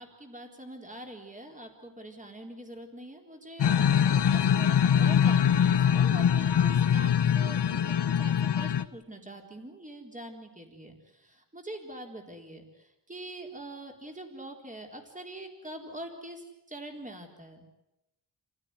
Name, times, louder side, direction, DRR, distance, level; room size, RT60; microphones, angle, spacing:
voice 1, 0.0-17.7, right 1 dB, 15° right, 3 dB, 4.1 m, -44 dB
sound 1, 3.6-8.8, left 8 dB, 70° left, 0.8 m, -23 dB
28.0 x 16.5 x 9.8 m, 0.92 s
wide cardioid pair, 120°, 44 cm